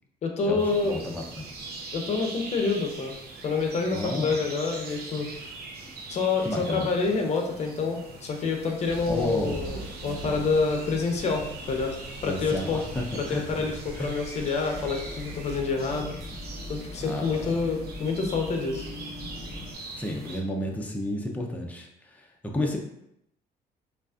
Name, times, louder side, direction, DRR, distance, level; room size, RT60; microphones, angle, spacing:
voice 1, 0.2-1.0 1.9-3.2 3.4-5.3 6.1-12.0 12.2-12.8 13.1-16.1 16.7-18.9, left 4 dB, 40° left, 3 dB, 0.8 m, -27 dB
sound 1, 0.6-20.4, right 3 dB, 70° right, 0.8 m, -42 dB
voice 2, 0.8-1.4 3.9-4.4 6.4-6.9 9.1-9.6 12.2-13.4 14.0-14.1 17.0-17.5 20.0-22.2 22.5-22.8, left 1 dB, 10° left, 0 dB, 0.6 m, -32 dB
sound 2, 8.8-15.6, right 1 dB, 85° right, 1.4 m, -42 dB
sound 3, 14.7-19.7, left 2 dB, 25° left, 1.2 m, -41 dB
5.1 x 2.5 x 2.4 m, 0.81 s
cardioid pair, 110°, 17 cm